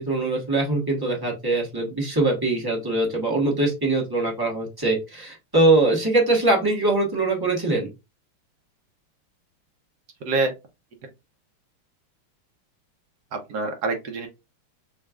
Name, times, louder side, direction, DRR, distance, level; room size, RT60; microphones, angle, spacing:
voice 1, 0.0-7.9, right 2 dB, 15° right, -1 dB, 0.8 m, -22 dB
voice 2, 13.3-14.3, right 3 dB, 60° right, 5 dB, 1.1 m, -26 dB
6.4 x 2.3 x 2.4 m, 0.25 s
omnidirectional pair, 2.4 m